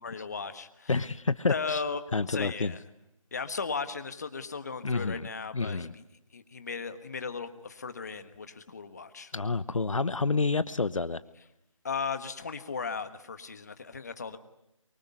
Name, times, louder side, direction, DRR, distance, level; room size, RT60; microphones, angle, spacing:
voice 1, 0.0-0.9 1.5-2.0 2.3-2.8 3.3-6.0 6.3-9.3 11.8-14.4, left 5 dB, 30° left, 10 dB, 1.4 m, -36 dB
voice 2, 0.9-1.8 2.1-2.7 4.8-5.3 5.5-5.9 9.3-11.2, left 4 dB, 65° left, 15 dB, 1.0 m, -29 dB
24.0 x 24.0 x 9.5 m, 0.87 s
figure-of-eight pair, 170°, 18 cm